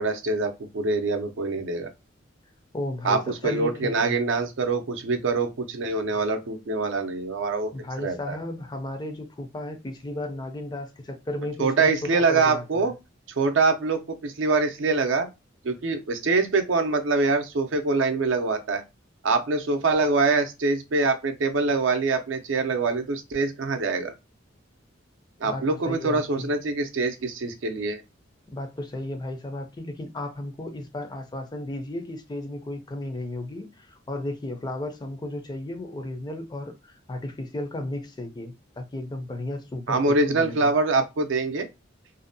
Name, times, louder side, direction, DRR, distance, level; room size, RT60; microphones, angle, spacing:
voice 1, 0.0-1.9 3.0-7.7 8.0-8.4 11.6-12.9 13.4-15.3 15.6-18.8 19.2-24.1 25.4-28.0 39.9-41.7, right 3 dB, 70° right, 0.5 m, -24 dB
voice 2, 2.7-4.2 7.7-12.9 25.4-26.5 28.5-40.7, left 1 dB, 20° left, 0.4 m, -34 dB
2.6 x 2.1 x 2.6 m
head